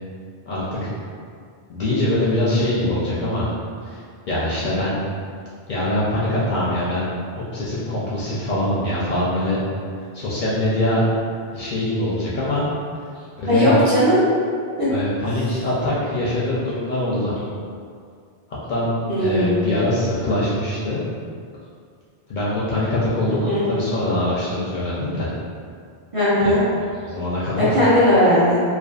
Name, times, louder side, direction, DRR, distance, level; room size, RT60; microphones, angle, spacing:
voice 1, 0.5-0.9 1.7-3.5 3.8-4.0 4.3-5.0 5.7-7.1 7.3-9.6 10.1-11.1 11.5-12.7 13.4-13.7 14.9-17.3 18.7-21.0 22.3-25.3 26.4-26.5 27.0-27.7, left 1 dB, 60° left, -8 dB, 0.6 m, -23 dB
voice 2, 13.5-14.2 14.8-14.9 19.1-19.6 23.3-23.6 26.1-26.6 27.6-28.6, equal, 40° right, -12 dB, 0.6 m, -17 dB
2.5 x 2.2 x 2.3 m, 2.2 s
omnidirectional pair, 1.1 m